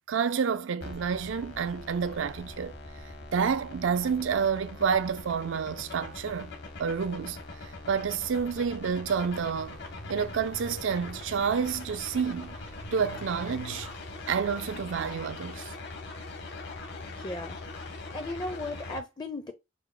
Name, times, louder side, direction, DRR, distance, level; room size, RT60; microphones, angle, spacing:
voice 1, 0.1-2.7 3.3-9.8 10.1-12.6 12.9-13.9 14.3-15.7, right 6 dB, 80° right, 0.4 m, -29 dB
sound 1, 0.8-19.0, left 2 dB, 65° left, 1.1 m, -42 dB
sound 2, 9.3-15.2, equal, 80° left, 1.8 m, -49 dB
voice 2, 17.1-17.9 18.1-19.5, left 2 dB, 25° left, 0.5 m, -37 dB
5.7 x 2.1 x 3.7 m
head